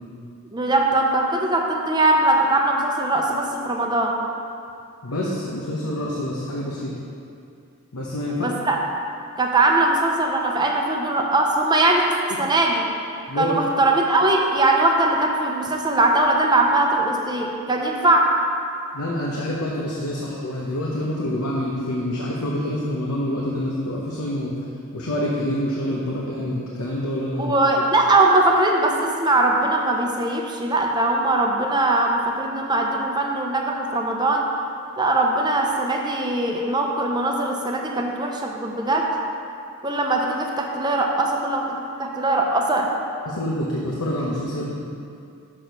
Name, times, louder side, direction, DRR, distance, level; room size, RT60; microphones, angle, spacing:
voice 1, 0.5-4.2 8.4-8.8 9.4-12.0 12.4-12.9 13.3-18.3 27.4-34.4 35.0-39.1 39.8-42.9, right 2 dB, 20° right, 1 dB, 0.6 m, -21 dB
voice 2, 5.0-7.0 7.9-8.5 13.3-13.6 18.9-24.6 24.9-27.5 43.3-44.7, left 1 dB, 80° left, -3 dB, 0.9 m, -26 dB
6.5 x 6.1 x 5.2 m, 2.5 s
head